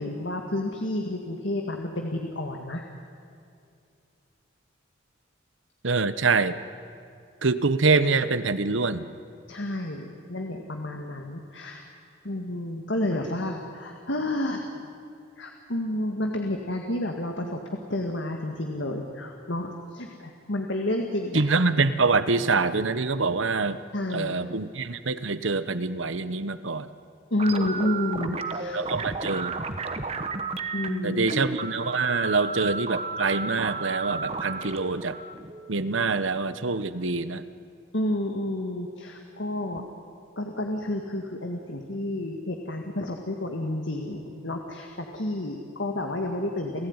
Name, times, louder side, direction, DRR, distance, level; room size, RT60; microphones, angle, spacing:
voice 1, 0.0-2.8 9.5-11.8 12.2-14.9 15.4-21.4 23.9-24.3 27.3-28.8 30.7-31.3 37.9-39.8 40.4-46.9, left 1 dB, 65° left, 3 dB, 2.0 m, -30 dB
voice 2, 5.8-6.6 7.4-9.1 21.3-23.8 24.1-26.9 28.7-29.6 31.0-35.2 35.7-37.4, right 4 dB, 75° right, 13 dB, 1.1 m, -25 dB
sound 1, 27.4-36.3, right 3 dB, 30° right, 1.2 m, -33 dB
29.5 x 16.0 x 9.7 m, 2.4 s
head